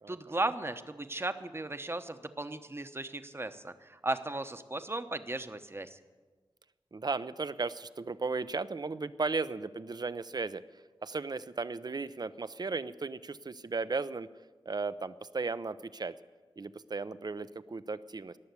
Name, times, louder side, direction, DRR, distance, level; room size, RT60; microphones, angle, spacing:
voice 1, 0.1-6.0, right 2 dB, 25° right, 9 dB, 1.0 m, -36 dB
voice 2, 6.9-10.6 11.0-14.3 14.7-16.1 16.6-18.4, right 4 dB, 45° right, 14 dB, 0.6 m, -35 dB
18.5 x 7.0 x 9.5 m, 1.3 s
wide cardioid pair, 60°, 10 cm